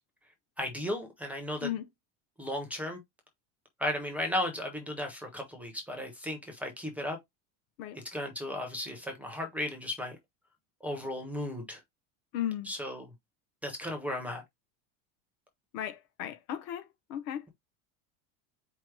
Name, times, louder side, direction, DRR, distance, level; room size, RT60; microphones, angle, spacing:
voice 1, 0.6-1.7 2.4-3.0 3.8-7.2 8.0-10.2 10.8-11.8 12.6-13.1 13.6-14.4, left 1 dB, 5° right, 0.5 m, -35 dB
voice 2, 12.3-12.7 15.7-17.4, left 11 dB, 40° left, 0.5 m, -35 dB
4.6 x 2.0 x 4.6 m
cardioid pair, 170°, 38 cm